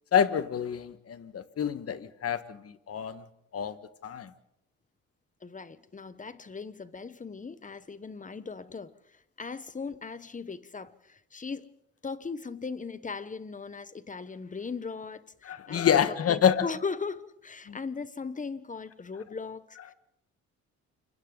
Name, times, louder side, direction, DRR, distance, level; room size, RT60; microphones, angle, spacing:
voice 1, 0.1-3.2 3.5-3.8 4.0-4.3 15.4-16.7 17.7-17.8, left 8 dB, 50° left, 1.6 m, -27 dB
voice 2, 5.4-11.7 12.0-16.0 16.3-19.9, left 4 dB, 25° left, 1.1 m, -38 dB
29.0 x 24.5 x 4.0 m
cardioid pair, 90°, 30 cm